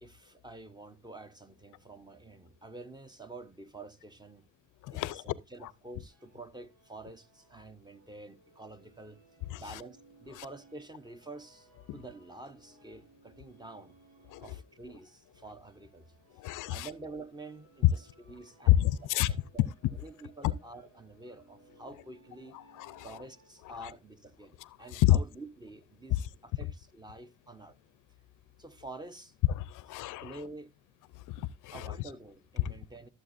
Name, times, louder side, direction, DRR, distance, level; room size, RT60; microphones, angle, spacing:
voice 1, 0.0-4.4 4.9-9.2 9.6-14.0 14.4-16.0 16.7-18.9 19.3-19.6 20.0-22.6 23.0-27.8 28.6-29.3 30.2-30.7 31.7-33.1, right 2 dB, 15° right, 0.9 m, -48 dB
voice 2, 4.8-5.3 5.6-5.7 9.5-9.8 10.4-10.5 11.9-12.0 14.3-14.5 16.3-16.9 17.8-17.9 18.7-19.3 22.5-23.1 23.7-23.9 24.6-25.2 29.5-30.4 31.3-32.0 32.6-32.7, left 14 dB, 90° left, 0.6 m, -29 dB
sound 1, 6.0-23.7, right 3 dB, 85° right, 4.5 m, -63 dB
14.5 x 7.5 x 2.6 m
cardioid pair, 90°, 30 cm